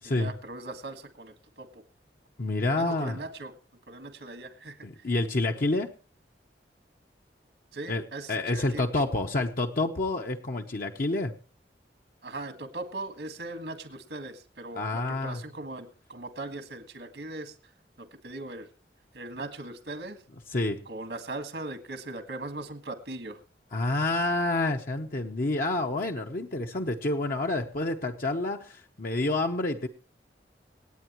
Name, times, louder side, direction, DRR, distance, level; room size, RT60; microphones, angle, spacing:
voice 1, 0.0-1.8 2.8-3.6 3.9-5.0 7.7-8.9 12.2-17.7 18.0-18.7 19.1-20.2 20.8-23.4, right 2 dB, 80° right, 8 dB, 1.7 m, -39 dB
voice 2, 2.4-3.2 4.8-5.9 7.9-8.0 8.3-11.3 14.8-15.4 20.5-20.8 23.7-29.9, left 2 dB, 55° left, 3 dB, 0.9 m, -28 dB
27.0 x 8.9 x 3.1 m, 0.35 s
head